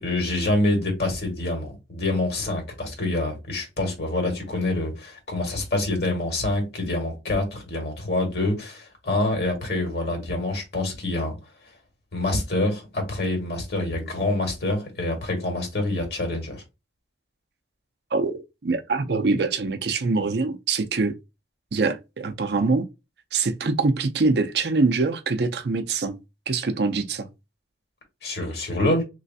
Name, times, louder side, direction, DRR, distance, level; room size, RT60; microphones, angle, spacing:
voice 1, 0.0-11.3 12.1-16.6 28.2-29.0, left 2 dB, 65° left, 1.6 m, -26 dB
voice 2, 18.1-21.1 21.7-22.9 23.3-26.2 26.5-27.3, right 3 dB, 70° right, 0.6 m, -24 dB
3.2 x 3.1 x 2.7 m
head